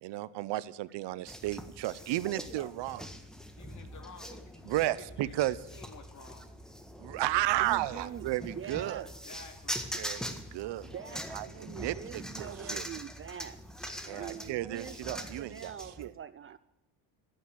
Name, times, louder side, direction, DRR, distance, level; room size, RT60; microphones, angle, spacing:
voice 1, 0.0-3.0 4.7-5.6 7.0-9.0 9.9-10.9 11.3-12.8 14.1-15.7 16.0-16.1, right 16 dB, 70° right, 18 dB, 0.8 m, -33 dB
sound 1, 1.3-16.0, equal, ahead, 1.6 m, -43 dB
voice 2, 3.6-6.5 7.3-7.5 7.9-8.2 9.1-9.8 11.0-11.3 13.9-14.4, left 5 dB, 40° left, 5 dB, 2.9 m, -52 dB
voice 3, 7.6-9.1 10.8-13.6 14.1-16.6, right 9 dB, 30° right, 15 dB, 0.4 m, -44 dB
14.0 x 9.1 x 9.1 m, 0.97 s
cardioid pair, 115°, 44 cm